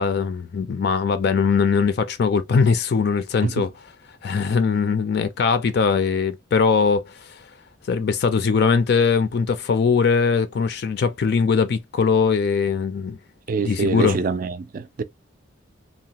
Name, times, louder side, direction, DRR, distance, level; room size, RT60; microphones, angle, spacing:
voice 1, 0.0-3.7 4.2-7.4 7.9-13.2 13.6-14.2, left 5 dB, 55° left, 0.4 m, -21 dB
voice 2, 13.5-15.0, right 5 dB, 45° right, 0.3 m, -25 dB
2.8 x 2.1 x 2.8 m
head